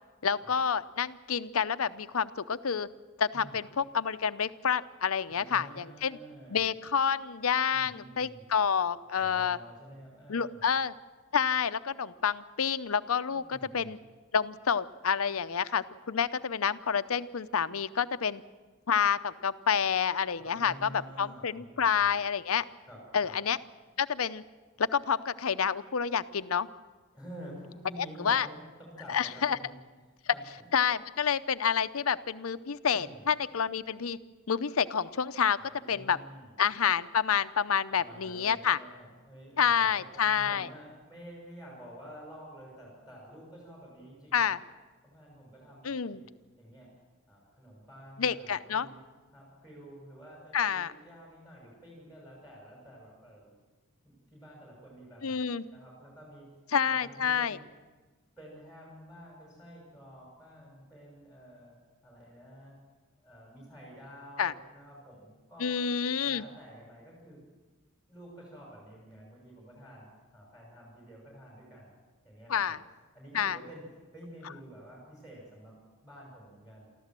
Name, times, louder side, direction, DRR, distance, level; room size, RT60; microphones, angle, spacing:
voice 1, 0.2-2.9 3.2-6.2 6.5-9.6 10.3-10.9 11.3-14.0 14.3-18.4 18.9-22.6 23.1-23.6 24.0-24.4 24.8-26.7 28.2-28.5 29.1-29.6 30.7-34.2 34.5-35.6 35.9-36.2 36.6-38.8 39.6-40.7 44.3-44.6 45.8-46.2 48.2-48.9 50.5-50.9 55.2-55.6 56.7-57.6 64.4-64.5 65.6-66.4 72.5-72.8 73.3-73.6, left 7 dB, 75° left, 13 dB, 0.7 m, -28 dB
voice 2, 5.3-6.6 7.7-8.5 9.2-10.6 13.3-13.9 20.4-22.2 22.9-23.3 27.1-29.8 30.2-30.7 32.9-33.2 35.6-36.5 37.9-44.5 45.0-46.3 46.6-46.9 47.3-49.0 49.3-53.5 54.0-56.5 56.8-57.6 58.4-61.7 62.0-62.7 63.2-65.8 66.2-67.4 68.1-71.9 72.2-72.8 73.1-73.9 74.1-75.8 76.0-76.9, equal, 5° right, -3 dB, 6.4 m, -50 dB
24.5 x 14.5 x 7.5 m, 1.3 s
head